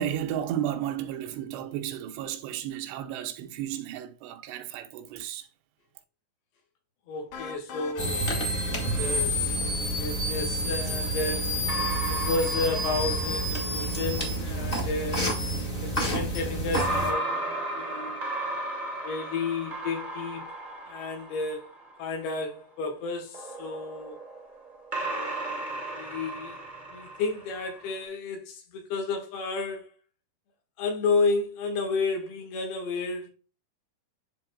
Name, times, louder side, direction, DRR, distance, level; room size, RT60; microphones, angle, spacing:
voice 1, 0.0-5.5, right 10 dB, 90° right, 2.9 m, -33 dB
voice 2, 7.1-11.6 12.1-15.3 15.8-18.3 19.0-20.5 20.9-21.6 22.0-24.2 25.0-26.6 26.9-29.9 30.8-33.3, left 3 dB, 70° left, 3.4 m, -32 dB
sound 1, 7.3-9.7, left 6 dB, 90° left, 3.4 m, -42 dB
sound 2, 8.0-17.1, right 1 dB, 30° left, 1.0 m, -29 dB
sound 3, 10.8-14.2 16.8-22.2 23.3-28.0, right 2 dB, 55° right, 0.5 m, -35 dB
11.5 x 3.9 x 2.2 m
omnidirectional pair, 4.8 m